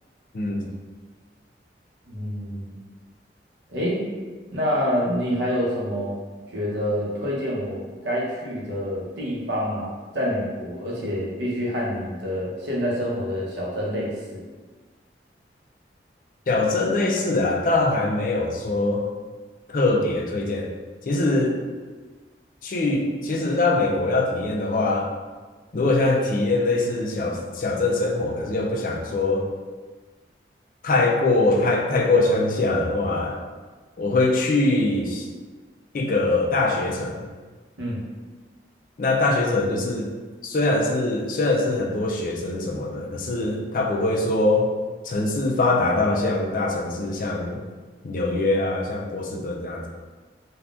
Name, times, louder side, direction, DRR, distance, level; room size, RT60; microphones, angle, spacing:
voice 1, 0.3-0.7 16.5-19.1 19.7-20.7 21.0-21.6 22.6-25.1 25.7-29.5 30.8-33.4 34.0-35.3 35.9-37.3 39.0-40.1 40.4-44.7 45.0-47.6 48.0-49.9, left 2 dB, 45° left, -1 dB, 0.4 m, -23 dB
voice 2, 2.1-2.8 3.7-4.0 4.5-6.1 6.5-14.4 37.8-38.0, equal, 80° right, -5 dB, 0.8 m, -27 dB
3.6 x 2.3 x 2.4 m, 1.4 s
head